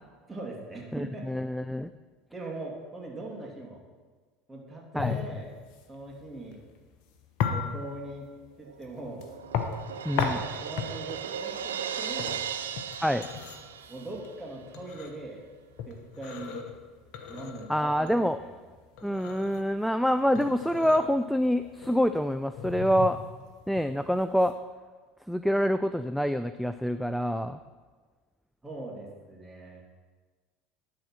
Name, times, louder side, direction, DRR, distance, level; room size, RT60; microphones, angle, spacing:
voice 1, 0.3-1.3 2.3-3.8 4.5-5.5 5.9-6.6 7.5-8.3 8.6-9.3 10.6-12.4 13.9-15.4 15.9-16.7 17.3-18.5 28.6-29.8, right 2 dB, 15° right, -1 dB, 2.6 m, -41 dB
voice 2, 0.9-1.9 5.0-5.2 10.0-10.4 13.0-13.3 17.7-18.4 19.0-23.2 23.7-24.5 25.3-27.6, equal, ahead, 11 dB, 0.3 m, -26 dB
sound 1, 5.0-24.5, left 6 dB, 60° left, 1.0 m, -36 dB
Crash cymbal, 8.7-14.4, right 8 dB, 80° right, 0.4 m, -37 dB
11.5 x 4.3 x 6.3 m, 1.4 s
hypercardioid pair, 75°, 0 cm